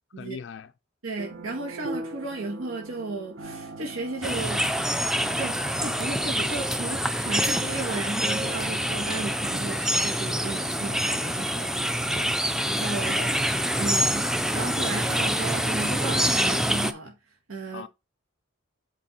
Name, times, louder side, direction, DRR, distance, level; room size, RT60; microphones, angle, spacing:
voice 1, 0.2-0.7 12.1-12.4 13.0-13.4 17.7-17.9, left 5 dB, 60° left, 0.4 m, -39 dB
voice 2, 1.0-4.7 5.3-12.1 12.6-13.2 13.8-17.2 17.5-17.9, right 3 dB, 85° right, 1.8 m, -34 dB
sound 1, 1.2-11.9, right 2 dB, 60° right, 1.1 m, -43 dB
sound 2, 4.2-16.9, equal, 5° right, 0.4 m, -26 dB
7.8 x 4.6 x 4.3 m
head